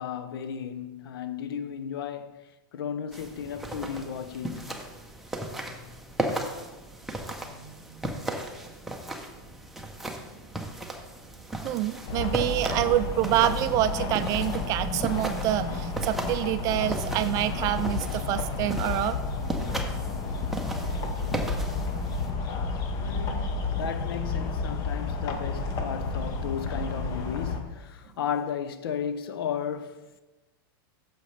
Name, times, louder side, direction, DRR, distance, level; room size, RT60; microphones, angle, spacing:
voice 1, 0.0-4.8 23.0-30.1, left 8 dB, 80° left, 0.7 m, -34 dB
sound 1, 3.1-22.3, right 1 dB, ahead, 0.7 m, -36 dB
voice 2, 11.6-19.2, right 13 dB, 30° right, 0.4 m, -26 dB
sound 2, 12.1-27.6, left 3 dB, 30° left, 0.9 m, -31 dB
9.4 x 6.8 x 3.3 m
supercardioid pair, 155°, 12 cm